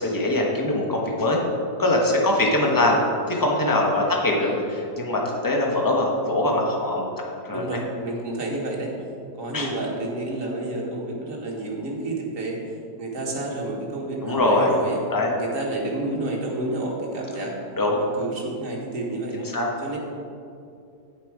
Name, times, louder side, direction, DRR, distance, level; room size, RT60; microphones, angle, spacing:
voice 1, 0.0-1.4 1.8-3.0 3.3-7.1 7.4-7.6 9.5-9.7 14.2-14.7 15.1-15.3 17.8-18.0 19.3-19.7, left 1 dB, 15° left, -1 dB, 1.0 m, -22 dB
voice 2, 7.5-8.9 9.3-12.6 13.0-15.0 15.4-17.6 18.0-19.4 19.8-20.0, right 2 dB, 50° right, -2 dB, 1.9 m, -30 dB
9.1 x 8.5 x 4.9 m, 2.5 s
omnidirectional pair, 1.8 m